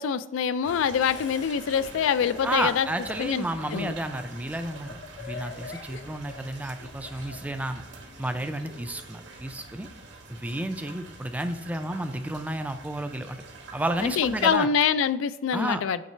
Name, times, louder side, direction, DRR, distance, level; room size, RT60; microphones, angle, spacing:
voice 1, 0.0-2.9 3.2-3.9 14.0-16.0, left 7 dB, 90° left, 15 dB, 0.3 m, -25 dB
sound 1, 0.6-14.6, right 3 dB, 70° right, 1.2 m, -46 dB
Laughter, 1.0-7.4, left 4 dB, 70° left, 0.7 m, -43 dB
voice 2, 2.4-7.8 8.2-9.9 10.3-13.4 13.7-14.7 15.5-15.8, right 1 dB, 10° right, 8 dB, 0.3 m, -31 dB
7.5 x 3.2 x 4.3 m, 1.1 s
head